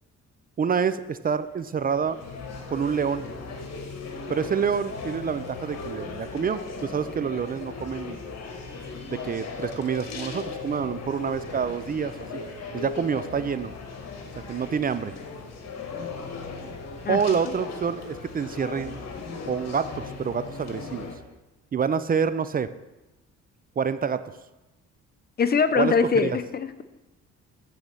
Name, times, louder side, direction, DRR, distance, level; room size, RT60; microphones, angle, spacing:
voice 1, 0.6-2.2 2.7-3.3 4.3-8.2 9.1-12.4 12.7-13.7 14.5-15.1 17.1-19.0 19.5-21.1 21.7-22.7 23.8-24.3 25.8-25.9 26.2-26.3, right 6 dB, 30° right, 13 dB, 0.4 m, -27 dB
sound 1, 1.4-21.1, left 4 dB, 60° left, 1.4 m, -38 dB
voice 2, 17.0-17.5 25.4-26.8, left 5 dB, 30° left, 11 dB, 0.6 m, -23 dB
8.2 x 4.2 x 6.6 m, 1.0 s
cardioid pair, 90°, 30 cm